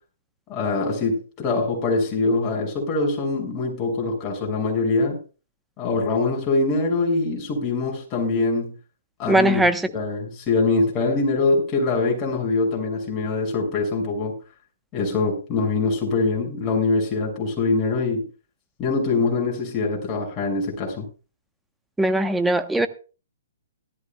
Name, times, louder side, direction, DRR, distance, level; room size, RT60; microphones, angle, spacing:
voice 1, 0.5-5.2 5.8-8.7 9.2-9.6 9.9-14.3 14.9-18.2 18.8-21.0, left 3 dB, 30° left, 6.3 m, -23 dB
voice 2, 9.3-9.9 22.0-22.9, right 1 dB, 5° right, 1.1 m, -20 dB
18.0 x 13.5 x 2.4 m
hypercardioid pair, 125°, 0 cm